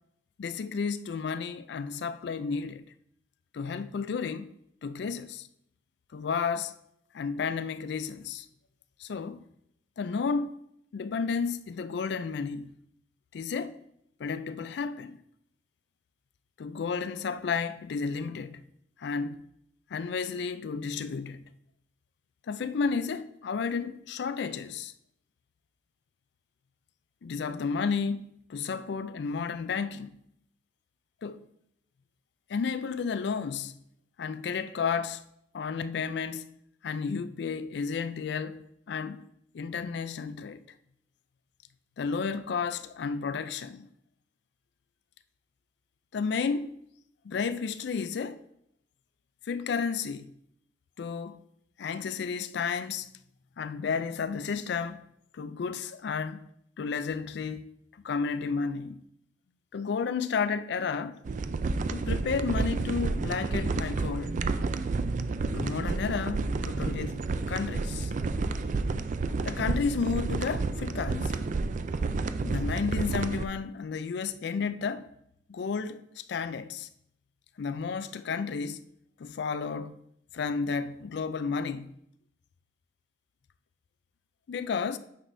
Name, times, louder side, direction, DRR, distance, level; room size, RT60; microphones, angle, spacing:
voice 1, 0.4-2.8 3.5-4.5 4.8-5.5 6.1-6.8 7.1-8.5 9.0-9.4 10.0-10.6 10.9-12.7 13.3-13.8 14.2-15.2 16.6-18.6 19.0-19.4 19.9-21.5 22.5-24.9 27.2-30.2 31.2-31.5 32.5-33.8 34.2-35.2 35.5-36.5 36.8-39.2 39.5-40.6 42.0-43.9 46.1-46.7 47.2-48.4 49.5-50.3 51.0-51.4 51.8-53.1 53.6-55.1 55.3-56.5 56.8-57.7 58.0-59.0 59.7-61.2 61.9-64.4 65.5-67.2 67.5-68.1 69.4-71.4 72.4-75.1 75.5-76.9 77.6-78.8 79.2-80.0 80.3-82.0 84.5-85.0, left 5 dB, 60° left, 0.4 m, -32 dB
sound 1, 61.3-73.5, right 3 dB, 40° right, 0.3 m, -30 dB
9.2 x 6.1 x 2.6 m
head